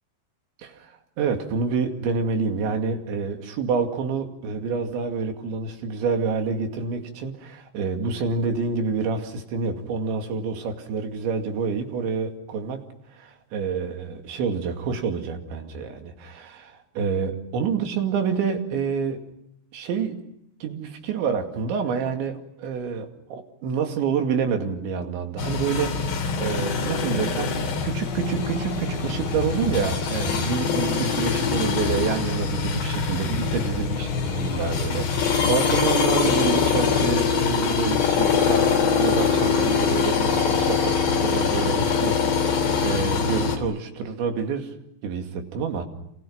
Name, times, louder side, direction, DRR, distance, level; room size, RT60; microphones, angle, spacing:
voice 1, 0.6-0.9 1.2-12.8 13.1-19.2 19.7-20.2 20.6-38.7 39.0-44.7 45.0-45.9, right 5 dB, 85° right, 4 dB, 4.7 m, -28 dB
sound 1, 25.4-43.6, left 5 dB, 70° left, 5.4 m, -23 dB
29.5 x 27.5 x 5.8 m, 0.76 s
omnidirectional pair, 5.1 m